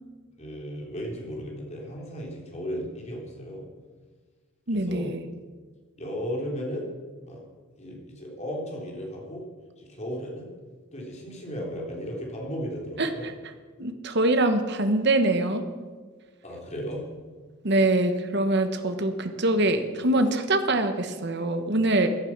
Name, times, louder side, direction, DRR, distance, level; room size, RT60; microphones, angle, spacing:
voice 1, 0.4-3.7 4.7-5.1 6.0-6.9 7.2-7.4 7.8-9.4 9.8-10.5 10.9-13.3 16.4-17.1, equal, 35° left, -1 dB, 3.6 m, -35 dB
voice 2, 4.7-5.2 13.0-13.3 13.8-15.6 17.6-22.1, right 2 dB, 55° right, 7 dB, 1.2 m, -24 dB
16.0 x 10.5 x 6.1 m, 1.4 s
head